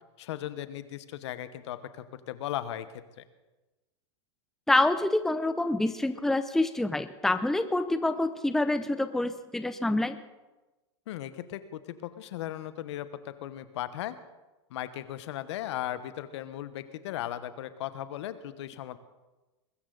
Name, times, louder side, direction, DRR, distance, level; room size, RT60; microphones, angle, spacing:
voice 1, 0.2-2.9 3.2-3.3 11.1-14.2 14.7-19.0, left 12 dB, 70° left, 13 dB, 1.1 m, -37 dB
voice 2, 4.7-10.2, left 2 dB, ahead, 11 dB, 0.7 m, -27 dB
22.0 x 13.5 x 4.0 m, 1.1 s
hypercardioid pair, 115°, 15 cm